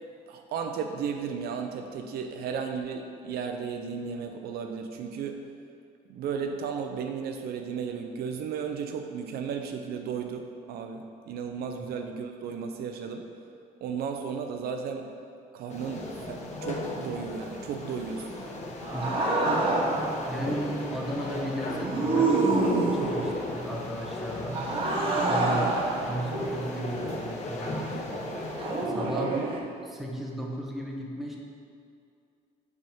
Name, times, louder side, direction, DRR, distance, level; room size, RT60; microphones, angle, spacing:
voice 1, 0.3-5.4 6.1-13.3 13.8-15.1 15.5-18.3 25.5-25.7 29.2-29.5, right 6 dB, 65° right, 5 dB, 0.5 m, -34 dB
sound 1, 15.7-28.9, left 2 dB, 40° left, 0.8 m, -36 dB
sound 2, 18.8-20.2 21.7-23.4 24.5-27.2 28.6-29.6, right 2 dB, 30° right, 1.0 m, -27 dB
voice 2, 20.3-22.6 22.9-24.7 25.2-25.7 26.0-28.3 28.8-29.3 29.9-31.4, right 1 dB, ahead, -2 dB, 0.9 m, -35 dB
5.2 x 3.5 x 5.7 m, 2.4 s
cardioid pair, 110°, 17 cm